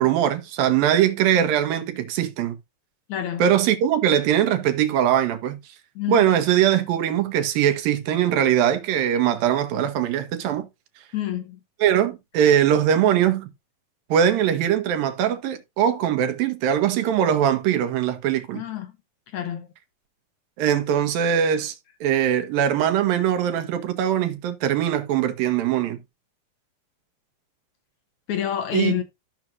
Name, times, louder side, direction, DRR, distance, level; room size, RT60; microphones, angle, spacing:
voice 1, 0.0-2.6 3.4-5.6 6.1-10.7 11.8-13.5 14.1-18.6 20.6-21.7 22.0-26.0 28.7-28.9, right 10 dB, 90° right, 2.9 m, -21 dB
voice 2, 3.1-3.5 6.0-6.3 11.1-11.6 18.5-18.9 19.3-19.7 28.3-29.0, left 10 dB, 70° left, 2.0 m, -27 dB
13.5 x 6.1 x 2.7 m
omnidirectional pair, 4.0 m